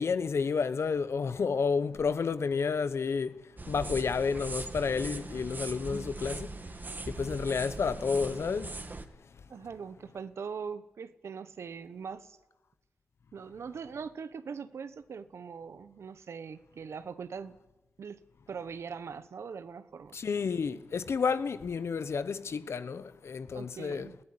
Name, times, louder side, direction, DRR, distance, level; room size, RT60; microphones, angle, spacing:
voice 1, 0.0-3.4 3.7-6.5 7.1-8.8 20.1-24.1, left 5 dB, 75° left, 1.0 m, -30 dB
sound 1, 3.6-9.1, right 3 dB, 45° right, 2.0 m, -40 dB
voice 2, 9.5-12.4 13.3-17.6 18.0-18.2 18.5-20.2 23.5-24.2, right 6 dB, 80° right, 1.1 m, -41 dB
19.0 x 16.0 x 9.9 m
cardioid pair, 50°, 5 cm